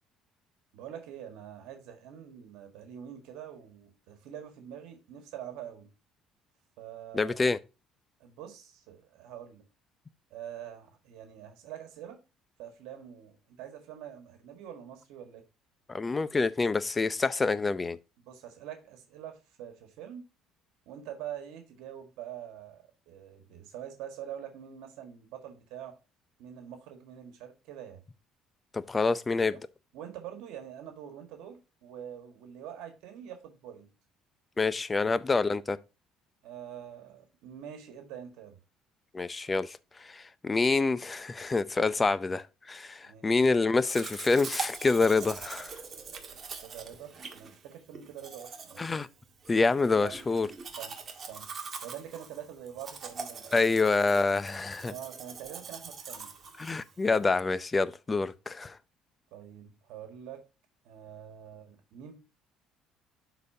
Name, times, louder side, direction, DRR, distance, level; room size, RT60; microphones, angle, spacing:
voice 1, 0.7-5.9 6.8-7.4 8.2-9.6 10.3-12.2 12.6-15.4 18.2-20.2 20.8-25.9 26.4-28.0 29.5-29.6 29.9-33.9 35.0-35.1 36.4-38.6 43.0-43.3 46.6-48.9 50.0-50.2 50.8-51.0 51.3-51.5 51.8-53.6 54.9-56.3 59.3-60.4 60.8-62.2, right 10 dB, 80° right, 1.7 m, -45 dB
voice 2, 7.1-7.6 15.9-18.0 28.7-29.6 34.6-35.8 39.1-45.8 48.8-49.1 49.5-50.5 53.5-54.9 56.6-58.8, left 3 dB, 20° left, 0.6 m, -27 dB
Domestic sounds home sounds, 43.8-57.2, right 5 dB, 35° right, 1.7 m, -43 dB
12.0 x 4.1 x 2.7 m
cardioid pair, 105°, 0 cm